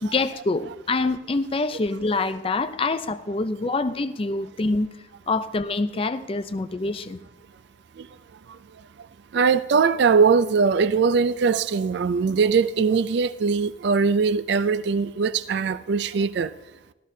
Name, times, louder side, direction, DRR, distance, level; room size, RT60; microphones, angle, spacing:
voice 1, 0.0-4.9 5.3-7.2 12.3-12.4, left 3 dB, 30° left, 0.4 m, -26 dB
voice 2, 9.3-16.5, right 5 dB, 60° right, 0.4 m, -21 dB
15.0 x 13.0 x 2.7 m
head